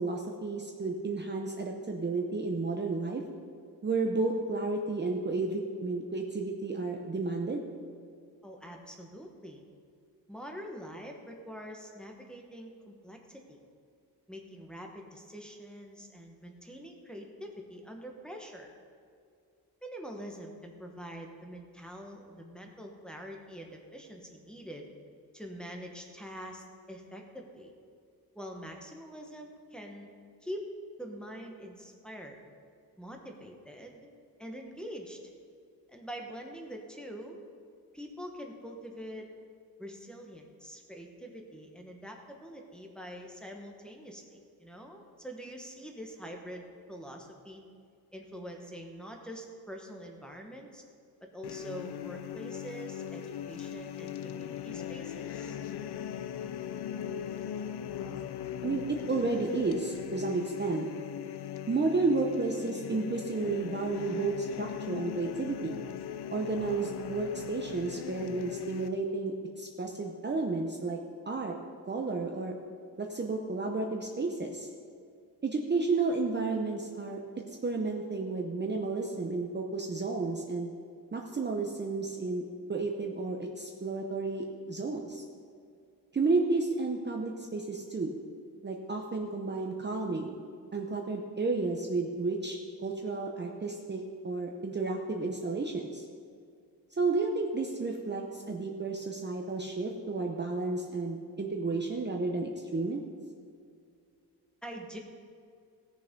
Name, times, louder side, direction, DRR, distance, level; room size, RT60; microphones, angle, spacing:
voice 1, 0.0-3.2 3.8-7.6 57.1-57.7 58.1-58.2 58.6-60.9 61.7-65.8 66.3-71.0 71.3-71.5 71.8-72.5 73.0-74.7 75.4-77.2 77.6-80.7 81.1-82.4 82.7-85.2 86.1-88.2 88.6-90.4 90.7-96.1 97.0-103.0, right 3 dB, 25° right, 1 dB, 0.8 m, -32 dB
voice 2, 8.4-9.6 10.3-13.6 14.3-18.7 19.8-24.9 25.3-27.7 28.3-30.1 30.4-30.7 31.0-32.4 33.0-34.1 34.4-35.2 35.9-37.4 37.9-39.3 39.8-47.6 48.1-50.8 51.2-55.6 104.6-105.0, equal, ahead, 1 dB, 1.3 m, -45 dB
sound 1, 51.4-68.9, left 9 dB, 80° left, 0.6 m, -39 dB
17.5 x 6.8 x 5.3 m, 2.3 s
wide cardioid pair, 135°, 39 cm